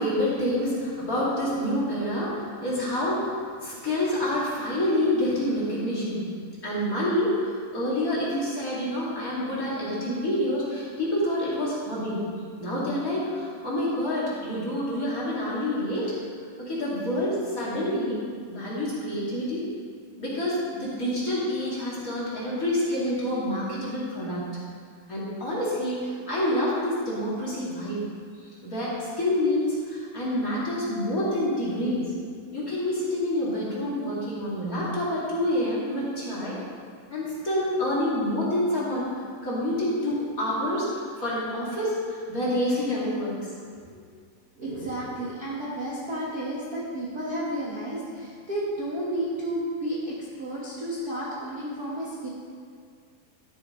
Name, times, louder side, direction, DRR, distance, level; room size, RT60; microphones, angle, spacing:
voice 1, 0.0-6.2 6.6-12.2 12.6-16.1 16.6-18.2 18.5-19.6 20.2-24.5 25.1-28.0 28.4-32.1 32.5-36.6 37.1-39.1 39.4-43.5 43.9-44.0, left 1 dB, 30° left, -8 dB, 2.1 m, -27 dB
voice 2, 44.5-52.3, right 1 dB, 70° right, -7 dB, 0.9 m, -32 dB
12.0 x 9.8 x 3.8 m, 2.1 s
omnidirectional pair, 4.1 m